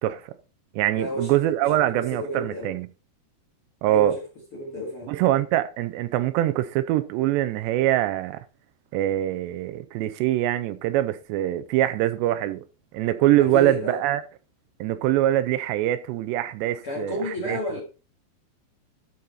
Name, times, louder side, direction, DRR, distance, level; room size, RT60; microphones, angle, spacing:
voice 1, 0.0-0.3 0.7-2.9 3.8-4.1 5.1-8.4 8.9-12.6 12.9-14.2 14.8-17.2 17.5-17.6, right 14 dB, 80° right, 2.7 m, -23 dB
voice 2, 1.0-1.4 1.7-2.8 3.8-4.2 4.5-5.1 13.4-14.0 16.8-17.8, equal, 45° left, 1.9 m, -31 dB
12.5 x 5.4 x 4.2 m
omnidirectional pair, 5.2 m